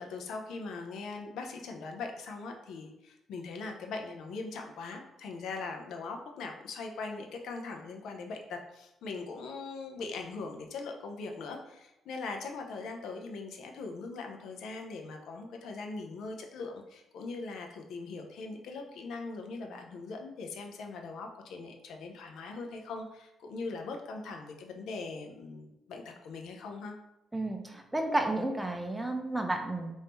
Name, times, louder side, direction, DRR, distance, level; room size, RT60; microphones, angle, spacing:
voice 1, 0.0-26.9, left 3 dB, 80° left, 3 dB, 0.6 m, -41 dB
voice 2, 27.3-29.9, right 2 dB, 10° right, 4 dB, 0.6 m, -32 dB
3.5 x 2.7 x 4.3 m, 0.91 s
cardioid pair, 90°, 0 cm